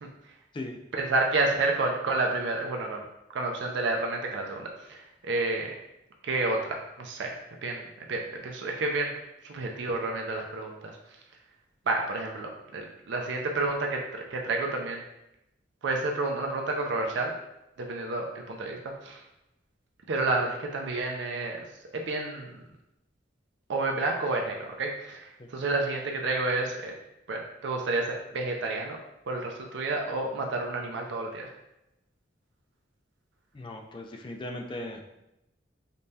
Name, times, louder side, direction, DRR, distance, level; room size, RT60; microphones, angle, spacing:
voice 1, 0.9-3.0 3.3-5.7 6.2-7.3 7.6-9.2 9.4-11.0 11.9-15.0 15.8-17.3 17.8-19.2 20.1-21.6 21.9-22.6 23.7-26.9 27.3-29.0 29.3-31.5, right 2 dB, 70° right, 1 dB, 0.4 m, -30 dB
voice 2, 33.5-35.0, left 1 dB, 25° left, 3 dB, 0.3 m, -38 dB
5.1 x 2.2 x 2.7 m, 0.88 s
head